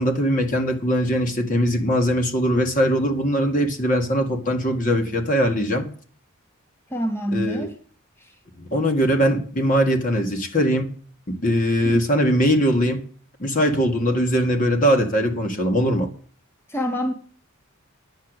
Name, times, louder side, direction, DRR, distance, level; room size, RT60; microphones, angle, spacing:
voice 1, 0.0-5.9 7.3-7.7 8.6-10.9 11.3-13.0 13.4-16.1, equal, 40° left, 2.0 m, -21 dB
voice 2, 6.9-7.7 8.2-8.3 11.8-11.9 16.7-17.1, equal, 10° left, 1.3 m, -26 dB
10.0 x 7.8 x 8.0 m
head